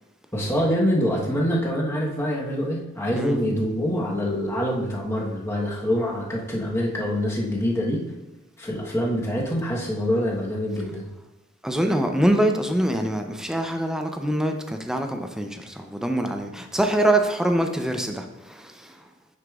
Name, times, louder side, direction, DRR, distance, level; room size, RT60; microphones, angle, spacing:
voice 1, 0.3-8.0 8.6-11.1, equal, 15° left, -3 dB, 1.1 m, -25 dB
voice 2, 11.6-19.1, right 1 dB, 5° right, 5 dB, 0.4 m, -24 dB
9.4 x 5.0 x 2.4 m, 1.0 s
head